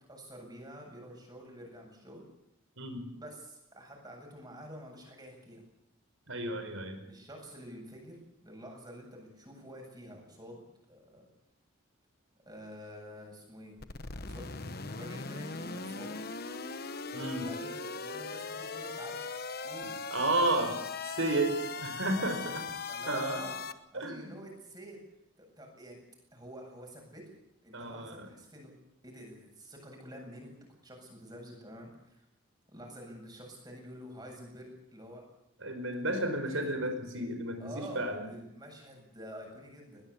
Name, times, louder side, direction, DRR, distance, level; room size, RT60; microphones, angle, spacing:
voice 1, 0.0-2.2 3.1-5.6 7.0-11.3 12.5-13.8 14.2-16.2 17.4-19.3 19.6-20.0 22.0-22.6 22.9-25.0 25.4-26.0 26.3-27.3 27.6-28.7 29.0-30.5 30.8-32.2 32.7-35.2 36.5-36.6 37.6-40.0, equal, 20° right, 1 dB, 8.0 m, -48 dB
voice 2, 6.3-7.0 17.1-17.5 20.1-20.8 21.1-22.6 23.1-23.5 23.9-24.2 27.7-28.3 35.6-38.2, right 2 dB, 70° right, 7 dB, 4.9 m, -32 dB
sound 1, 13.8-23.7, left 4 dB, 45° left, 1.1 m, -39 dB
21.5 x 19.5 x 8.6 m, 0.80 s
head